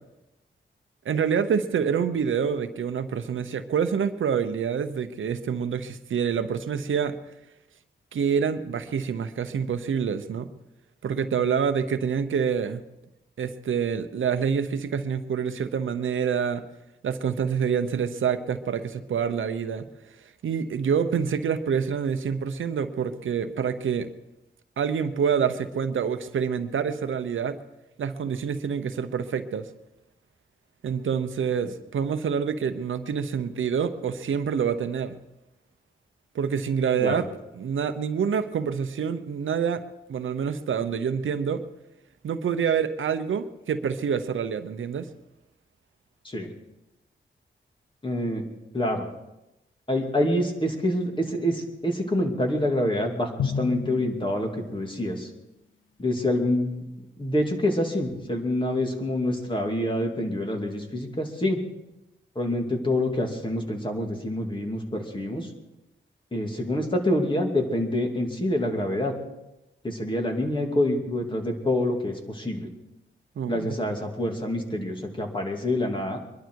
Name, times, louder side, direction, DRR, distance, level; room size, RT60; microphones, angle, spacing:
voice 1, 1.0-7.2 8.1-10.5 11.0-12.8 13.4-16.7 17.0-19.9 20.4-24.1 24.8-27.6 28.0-29.7 30.8-35.2 36.3-37.3 37.5-39.8 40.1-41.6 42.2-45.1 73.4-73.8, right 7 dB, 85° right, 10 dB, 0.9 m, -27 dB
voice 2, 48.0-48.4 48.7-49.1 49.9-55.3 56.0-56.8 57.2-61.6 62.4-65.5 66.3-69.1 69.8-72.7 73.5-76.2, left 1 dB, 25° left, 2 dB, 2.6 m, -26 dB
Drum, 53.4-55.1, left 6 dB, 80° left, 0.8 m, -32 dB
23.0 x 11.5 x 4.7 m, 0.95 s
wide cardioid pair, 95°, 20 cm